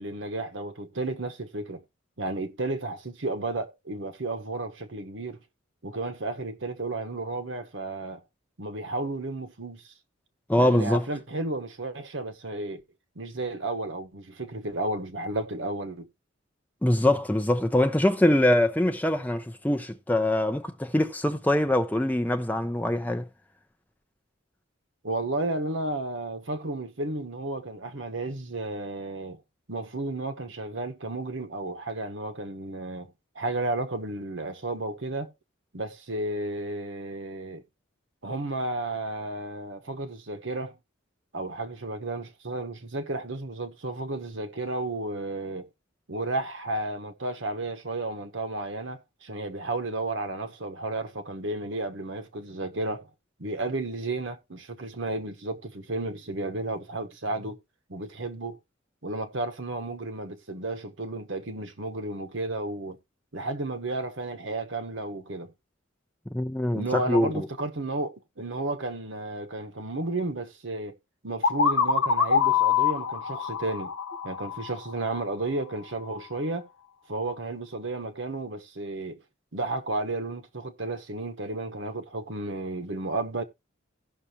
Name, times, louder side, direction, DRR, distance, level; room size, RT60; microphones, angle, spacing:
voice 1, 0.0-1.8 2.2-5.4 5.8-8.2 8.6-9.9 10.6-12.8 13.1-16.1 25.0-29.4 29.7-35.3 35.7-37.6 38.2-40.7 41.3-45.7 46.1-53.1 53.4-57.6 57.9-58.6 59.0-63.0 63.3-65.5 66.7-71.0 71.2-73.9 74.2-76.7 77.1-79.2 79.5-83.4, right 2 dB, 65° right, 1.1 m, -33 dB
voice 2, 10.5-11.1 16.8-23.3 66.3-67.5, left 1 dB, 10° left, 0.6 m, -23 dB
sound 1, 71.4-75.2, left 6 dB, 60° left, 1.0 m, -25 dB
17.0 x 6.1 x 2.8 m
head